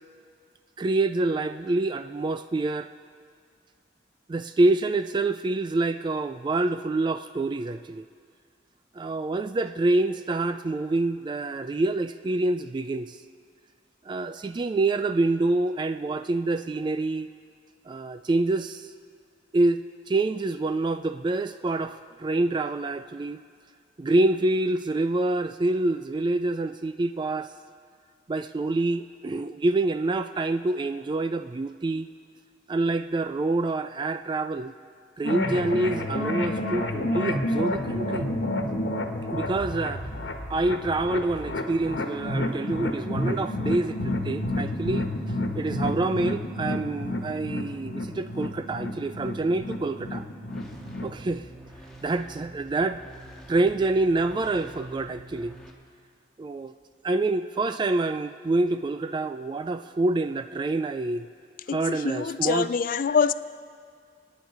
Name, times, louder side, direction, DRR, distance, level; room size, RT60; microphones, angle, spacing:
voice 1, 0.8-2.9 4.3-8.0 9.0-13.2 14.1-17.3 17.9-18.9 19.5-23.4 24.0-27.5 28.3-32.1 32.7-34.7 35.2-38.3 39.3-40.1 40.5-45.1 45.5-50.2 51.0-51.5 52.0-53.0 53.5-55.6 56.4-56.7 57.0-61.3 61.7-62.7, right 2 dB, 25° right, 10 dB, 0.3 m, -26 dB
sound 1, 35.2-51.2, left 1 dB, 80° left, 1.3 m, -30 dB
sound 2, 50.4-55.7, right 1 dB, 5° left, 1.7 m, -46 dB
voice 2, 61.7-63.3, left 6 dB, 50° left, 15 dB, 0.4 m, -25 dB
25.5 x 9.4 x 4.8 m, 2.1 s
head